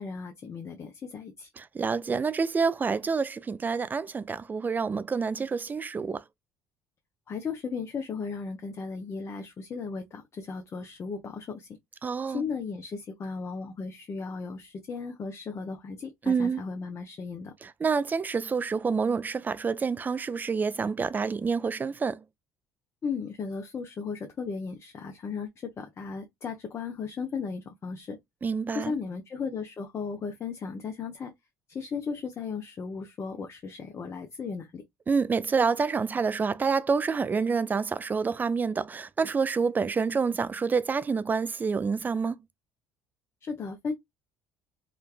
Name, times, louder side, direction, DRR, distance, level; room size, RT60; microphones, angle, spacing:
voice 1, 0.0-1.5 7.3-11.7 12.3-17.5 23.0-28.2 28.7-31.3 31.7-34.8 43.4-43.9, left 5 dB, 35° left, 0.6 m, -36 dB
voice 2, 1.6-6.2 12.0-12.5 16.2-16.6 17.6-22.2 28.4-28.9 35.1-42.4, right 5 dB, 25° right, 0.3 m, -28 dB
3.1 x 2.2 x 2.3 m
hypercardioid pair, 70°, 8 cm